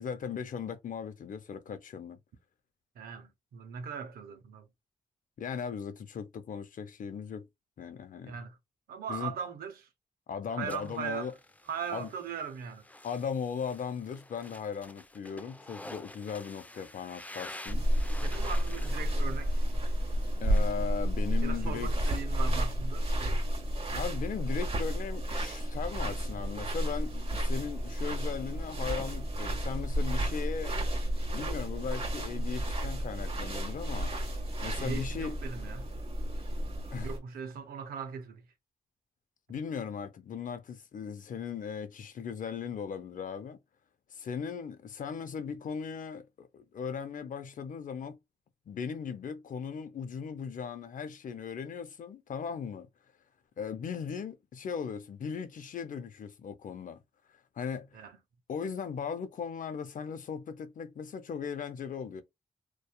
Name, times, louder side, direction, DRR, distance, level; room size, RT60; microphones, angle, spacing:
voice 1, 0.0-2.2 5.4-7.5 7.8-8.4 9.1-9.3 10.3-11.3 11.9-12.1 13.0-17.9 20.4-22.2 23.9-30.8 31.3-34.1 34.6-35.4 36.9-37.1 39.5-43.6 44.1-48.2 48.7-52.9 53.6-57.0 57.6-58.0 58.5-62.2, left 6 dB, 60° left, 0.5 m, -38 dB
voice 2, 3.0-4.7 8.3-8.6 8.9-9.9 10.5-11.3 11.7-12.8 18.2-19.6 21.4-23.4 34.8-35.9 37.0-38.4 39.5-39.6 57.9-58.2, right 7 dB, 85° right, 0.6 m, -39 dB
sound 1, 10.7-20.7, left 1 dB, 10° left, 0.4 m, -49 dB
sound 2, 17.7-37.2, equal, 40° right, 1.1 m, -31 dB
2.7 x 2.3 x 2.2 m
supercardioid pair, 45°, 15 cm